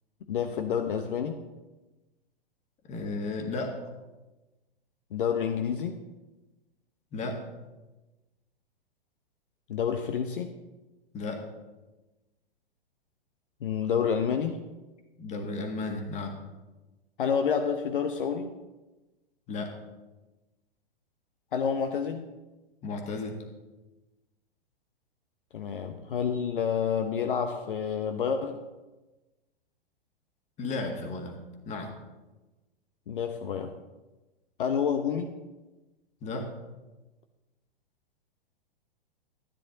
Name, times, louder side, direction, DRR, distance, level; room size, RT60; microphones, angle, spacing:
voice 1, 0.3-1.4 5.1-6.0 9.7-10.5 13.6-14.6 17.2-18.5 21.5-22.3 25.5-28.6 33.1-33.7 34.6-35.3, left 7 dB, 60° left, 6 dB, 0.9 m, -29 dB
voice 2, 2.9-3.8 7.1-7.5 11.1-11.5 15.2-16.4 19.5-19.8 22.8-23.4 30.6-31.9 36.2-36.6, left 3 dB, 25° left, 4 dB, 1.8 m, -34 dB
13.5 x 9.7 x 3.9 m, 1.1 s
figure-of-eight pair, 110°, 29 cm